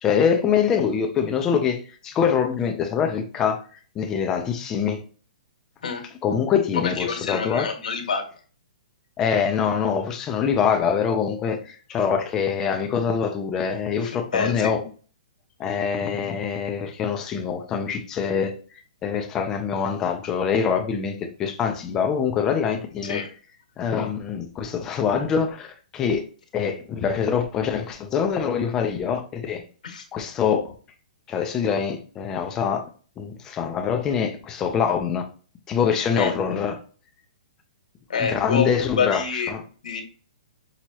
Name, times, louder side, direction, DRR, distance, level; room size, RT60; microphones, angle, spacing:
voice 1, 0.0-3.6 4.0-5.0 6.2-7.7 9.2-14.8 15.6-18.6 19.0-23.2 23.8-26.2 26.5-29.6 30.1-30.7 31.3-32.9 33.2-35.3 35.7-36.8 38.2-39.6, left 7 dB, 10° left, 0.5 m, -24 dB
voice 2, 6.7-8.2 14.0-14.7 23.0-23.3 29.8-30.0 36.2-36.3 38.1-38.7 39.0-39.5 39.8-40.0, left 6 dB, 75° left, 1.4 m, -27 dB
6.1 x 2.9 x 2.9 m
hypercardioid pair, 175°, 4 cm